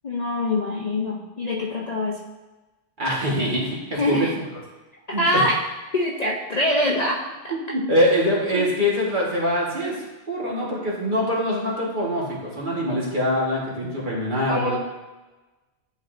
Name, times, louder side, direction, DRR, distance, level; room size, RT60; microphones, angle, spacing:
voice 1, 0.0-2.2 3.9-4.3 5.2-5.6 5.9-7.2 8.5-8.7 14.5-14.8, left 1 dB, 45° left, -2 dB, 0.7 m, -24 dB
voice 2, 3.0-4.3 5.1-5.2 7.5-10.0 10.3-14.8, equal, 45° right, -4 dB, 1.6 m, -24 dB
10.5 x 4.0 x 2.5 m, 1.1 s
omnidirectional pair, 1.1 m